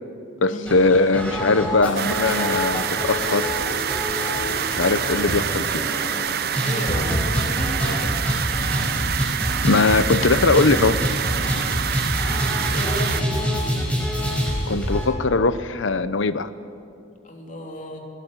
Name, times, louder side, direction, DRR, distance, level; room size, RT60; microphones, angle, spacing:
voice 1, 0.4-3.6 4.7-5.9 9.6-11.0 14.7-16.5, left 3 dB, 70° left, 13 dB, 0.9 m, -20 dB
sound 1, 0.7-15.1, equal, 5° left, 5.3 m, -26 dB
sound 2, 2.0-13.2, right 9 dB, 50° right, 0.6 m, -27 dB
voice 2, 6.4-8.3 11.3-12.2 12.7-13.4 17.2-18.0, left 1 dB, 40° left, 1 dB, 3.3 m, -34 dB
21.0 x 19.0 x 9.0 m, 2.5 s
head